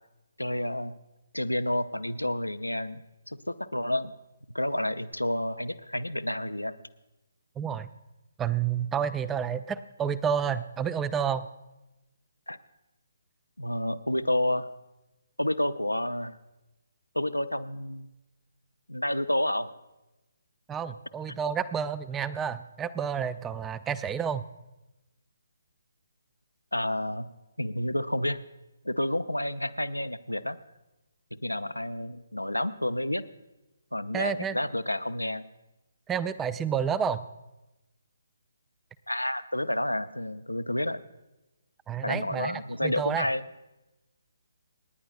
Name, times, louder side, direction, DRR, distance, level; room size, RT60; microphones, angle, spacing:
voice 1, 0.4-1.0 1.3-4.1 4.5-6.8 12.5-12.6 13.6-14.7 15.4-16.4 17.1-18.1 18.9-19.7 26.7-27.3 27.6-28.4 28.8-30.6 31.4-33.2 33.9-35.5 39.1-41.0 42.0-43.4, left 1 dB, 85° left, 12 dB, 0.6 m, -30 dB
voice 2, 7.6-7.9 8.4-11.5 20.7-24.4 34.1-34.6 36.1-37.2 41.9-43.3, right 7 dB, 10° right, 16 dB, 0.4 m, -30 dB
27.5 x 10.0 x 2.4 m, 1.0 s
figure-of-eight pair, 140°, 0 cm